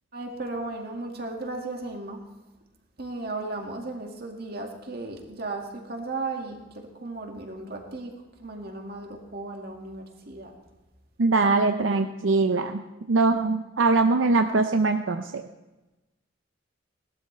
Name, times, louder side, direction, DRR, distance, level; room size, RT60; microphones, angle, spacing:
voice 1, 0.1-2.2 3.0-8.1 8.4-10.5, right 2 dB, 55° right, 2 dB, 2.0 m, -35 dB
voice 2, 11.2-12.8 13.1-15.4, right 3 dB, 85° right, 6 dB, 0.6 m, -22 dB
18.5 x 12.5 x 3.3 m, 1.1 s
head